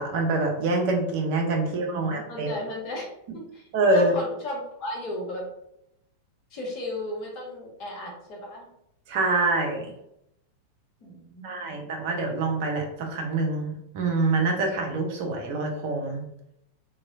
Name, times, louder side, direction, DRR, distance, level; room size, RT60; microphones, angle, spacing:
voice 1, 0.0-2.5 3.7-4.1 9.1-9.9 11.4-16.2, right 2 dB, 50° right, 3 dB, 0.6 m, -25 dB
voice 2, 1.6-3.6 3.9-5.5 6.5-8.7 11.0-11.9, left 1 dB, 40° left, -1 dB, 1.0 m, -35 dB
3.0 x 2.6 x 2.4 m, 0.79 s
figure-of-eight pair, 90°, 0 cm